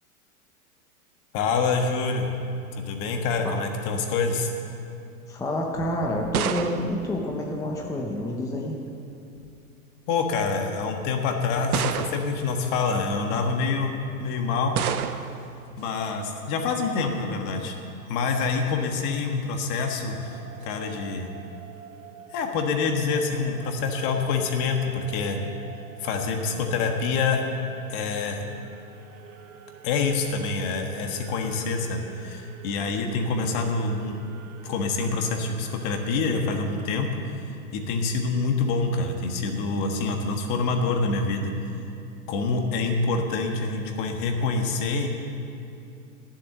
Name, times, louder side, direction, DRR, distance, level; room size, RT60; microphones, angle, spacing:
voice 1, 1.3-2.3 2.8-4.5 10.1-14.8 15.8-17.7 18.1-21.3 22.3-25.4 26.0-27.4 27.9-28.4 29.8-34.1 34.6-37.4 37.7-41.5 42.3-45.1, left 4 dB, 45° left, 4 dB, 1.5 m, -26 dB
voice 2, 5.3-8.8, left 1 dB, 10° left, 0 dB, 0.8 m, -28 dB
sound 1, 5.7-8.1 9.1-9.6 10.4-10.5 11.7-12.5 14.8-15.5, right 9 dB, 80° right, 0.7 m, -30 dB
sound 2, 20.3-36.8, right 7 dB, 55° right, 1.4 m, -47 dB
11.5 x 7.4 x 7.6 m, 2.7 s
hypercardioid pair, 120°, 44 cm